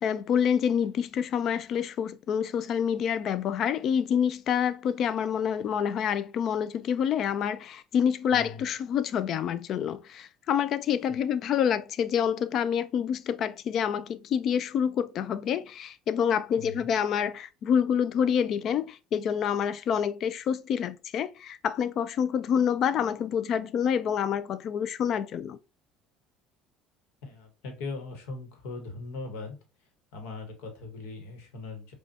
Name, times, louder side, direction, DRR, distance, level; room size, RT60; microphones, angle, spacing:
voice 1, 0.0-25.6, left 8 dB, 50° left, 0.3 m, -27 dB
voice 2, 8.3-8.6 16.6-16.9 27.2-29.6 30.1-31.9, left 3 dB, 85° left, 1.1 m, -39 dB
5.1 x 2.3 x 2.7 m
cardioid pair, 115°, 0 cm